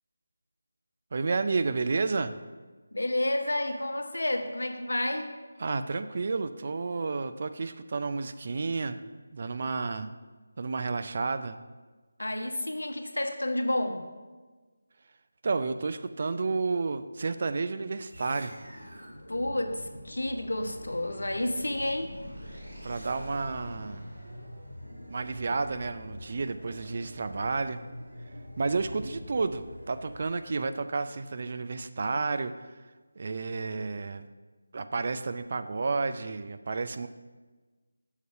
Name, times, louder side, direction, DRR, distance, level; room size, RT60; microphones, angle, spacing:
voice 1, 1.1-2.4 5.6-9.0 9.3-10.1 10.6-11.6 15.4-18.6 22.8-24.1 25.1-27.8 28.6-32.7 33.2-34.2 34.7-37.1, right 4 dB, 45° right, 10 dB, 0.4 m, -31 dB
voice 2, 2.9-5.3 12.2-14.0 19.3-22.1, left 1 dB, 75° left, 6 dB, 0.9 m, -30 dB
sound 1, 18.1-30.7, equal, 85° right, 2.3 m, -44 dB
6.4 x 5.3 x 5.5 m, 1.3 s
figure-of-eight pair, 160°, 0 cm